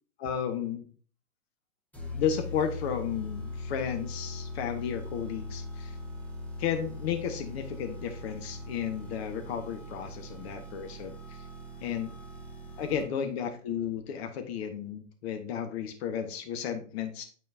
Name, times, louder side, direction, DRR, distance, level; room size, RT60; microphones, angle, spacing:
voice 1, 0.2-0.9 2.1-6.0 6.6-11.4 11.8-12.1 12.8-17.2, left 8 dB, 50° left, 7 dB, 1.3 m, -33 dB
sound 1, 1.9-13.3, left 1 dB, 5° left, 1.1 m, -40 dB
8.7 x 4.4 x 2.7 m, 0.42 s
hypercardioid pair, 125°, 41 cm